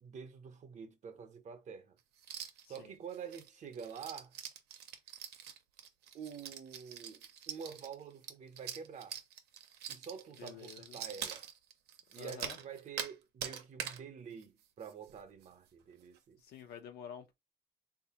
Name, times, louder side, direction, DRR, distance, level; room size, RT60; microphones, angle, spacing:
voice 1, 0.0-2.0 2.7-4.3 6.1-9.2 9.9-11.4 12.1-16.4, right 7 dB, 45° right, 0.7 m, -47 dB
sound 1, 2.2-2.8 3.1-13.1 13.4-14.0 14.4-14.5 14.8-15.1 15.4-15.5 16.0-16.2, right 9 dB, 75° right, 0.6 m, -44 dB
voice 2, 10.4-11.0 12.2-12.6 16.4-17.3, left 8 dB, 70° left, 0.7 m, -49 dB
3.3 x 2.5 x 2.8 m
cardioid pair, 110°, 17 cm